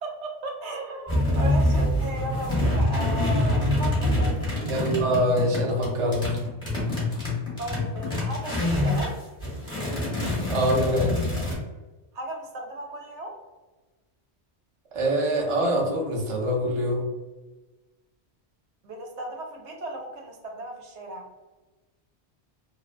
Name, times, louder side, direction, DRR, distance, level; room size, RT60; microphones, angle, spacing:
voice 1, 0.0-4.4 7.6-9.1 12.1-13.3 18.8-21.2, right 2 dB, 85° right, 1 dB, 0.9 m, -35 dB
sound 1, 1.1-9.1 9.4-11.5, left 1 dB, 5° left, 0.8 m, -25 dB
voice 2, 4.7-6.4 10.5-11.2 14.9-17.1, equal, 40° right, -1 dB, 0.4 m, -24 dB
2.5 x 2.1 x 2.4 m, 1.2 s
omnidirectional pair, 1.1 m